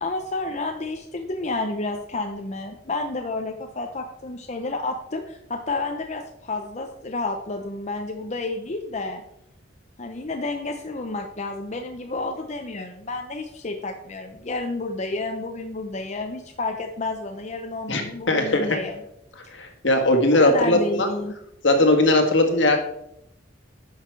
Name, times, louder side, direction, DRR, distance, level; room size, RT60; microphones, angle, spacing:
voice 1, 0.0-9.2 10.0-19.0 19.4-19.6 20.3-21.3, left 2 dB, 35° left, 3 dB, 0.8 m, -30 dB
voice 2, 18.3-18.8 19.5-21.1 21.6-22.8, left 1 dB, 70° left, 5 dB, 1.7 m, -19 dB
11.0 x 6.6 x 4.6 m, 0.78 s
head